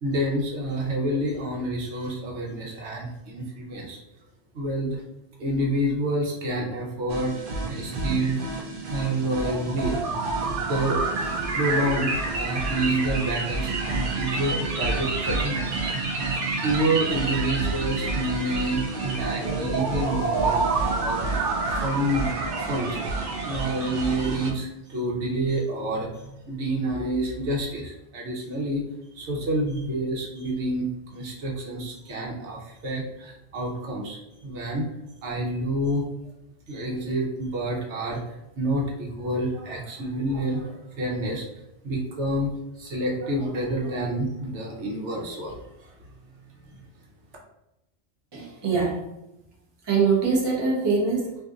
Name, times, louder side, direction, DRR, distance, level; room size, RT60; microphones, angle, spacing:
voice 1, 0.0-4.0 4.5-5.0 5.4-8.6 8.9-10.3 10.7-21.5 21.8-22.4 22.6-23.0 23.5-28.8 29.1-34.9 35.2-36.0 36.7-38.2 38.6-41.5 41.8-42.5 42.8-45.9 46.7-46.8, right 1 dB, 75° right, -2 dB, 1.1 m, -28 dB
sound 1, 7.1-24.5, right 3 dB, 60° right, 0.7 m, -28 dB
voice 2, 48.3-49.0 49.8-51.4, right 4 dB, 25° right, -3 dB, 0.7 m, -23 dB
3.9 x 2.7 x 2.4 m, 0.88 s
omnidirectional pair, 1.2 m